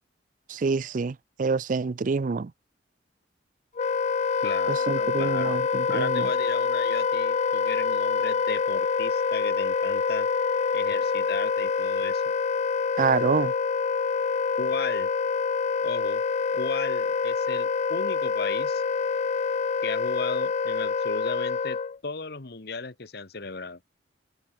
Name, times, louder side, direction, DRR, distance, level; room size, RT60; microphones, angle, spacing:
voice 1, 0.5-2.5 4.7-6.3 13.0-13.5, right 4 dB, 45° right, 0.4 m, -27 dB
Wind instrument woodwind instrument, 3.8-22.0, left 5 dB, 40° left, 0.3 m, -26 dB
voice 2, 4.4-5.6 5.9-10.3 10.7-12.2 14.6-15.1 15.8-16.2 16.5-18.8 19.8-23.8, left 4 dB, 60° left, 1.3 m, -36 dB
open air
head